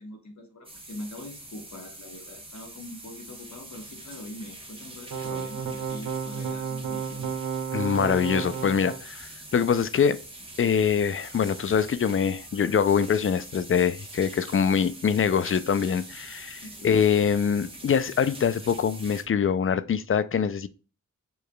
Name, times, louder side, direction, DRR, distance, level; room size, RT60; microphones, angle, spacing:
voice 1, 0.0-7.3 16.6-17.1, left 1 dB, 65° left, 1.3 m, -43 dB
sound 1, 0.6-19.2, right 1 dB, 15° right, 1.1 m, -44 dB
sound 2, 5.1-9.0, right 6 dB, 90° right, 0.7 m, -32 dB
voice 2, 7.7-10.2 10.6-20.7, left 7 dB, 45° left, 0.4 m, -24 dB
6.8 x 3.1 x 2.3 m
cardioid pair, 40°, 31 cm